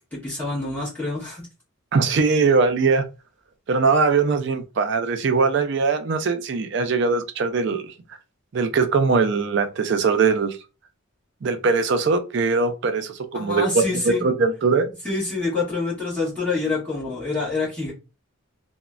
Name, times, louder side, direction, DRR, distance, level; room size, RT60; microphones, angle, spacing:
voice 1, 0.1-1.4 13.3-14.2 15.0-17.9, left 3 dB, 5° left, 1.4 m, -26 dB
voice 2, 1.9-3.1 3.7-7.9 8.5-10.6 11.4-14.9, right 4 dB, 55° right, 0.4 m, -21 dB
3.0 x 2.1 x 2.4 m
head